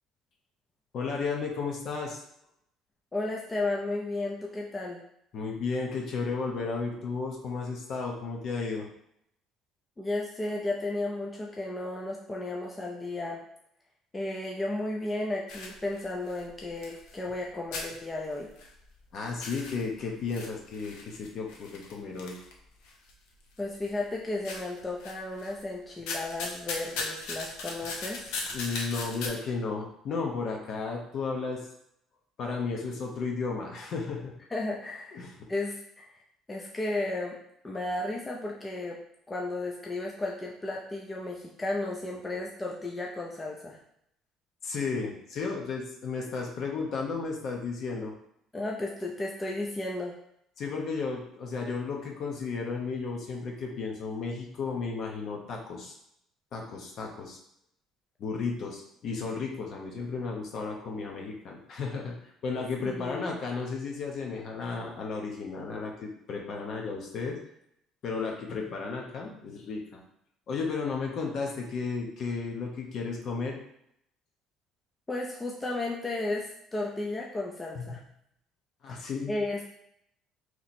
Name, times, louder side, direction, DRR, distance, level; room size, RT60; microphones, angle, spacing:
voice 1, 0.9-2.2 5.3-8.9 19.1-22.4 28.5-31.7 32.4-34.3 35.1-35.3 44.6-48.1 50.6-55.9 56.5-57.4 58.2-67.4 68.0-70.0 70.5-73.6 77.7-78.0 78.8-79.3, left 4 dB, 50° left, 0 dB, 0.8 m, -33 dB
voice 2, 3.1-5.0 10.0-13.4 14.1-18.5 23.6-28.4 34.5-36.2 36.5-37.4 37.6-39.0 39.3-43.8 48.5-50.2 62.8-63.2 75.1-78.0 79.3-79.6, left 2 dB, 15° left, -1 dB, 0.5 m, -34 dB
sound 1, 15.5-17.4 17.7-19.0 19.3-23.1 23.6-24.1 24.4-25.6 25.9-29.3, left 3 dB, 90° left, 0.7 m, -38 dB
3.0 x 2.9 x 4.1 m, 0.74 s
cardioid pair, 135°, 0 cm